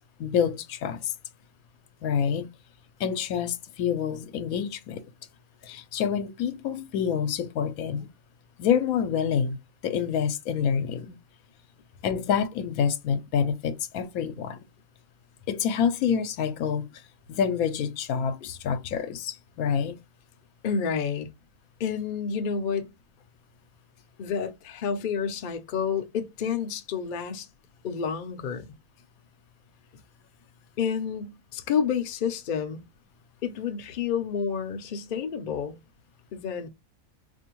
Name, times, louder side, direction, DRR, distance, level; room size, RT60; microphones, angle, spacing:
voice 1, 0.2-1.1 2.0-2.5 3.0-5.0 5.6-8.1 8.6-9.6 9.8-11.2 12.0-14.6 15.5-16.9 17.3-20.0, left 7 dB, 85° left, 1.0 m, -27 dB
voice 2, 20.6-21.3 21.8-22.9 24.2-27.5 27.8-28.7 30.8-32.8 33.4-35.8 36.3-36.7, left 6 dB, 55° left, 0.6 m, -29 dB
4.3 x 2.6 x 2.9 m
omnidirectional pair, 1.5 m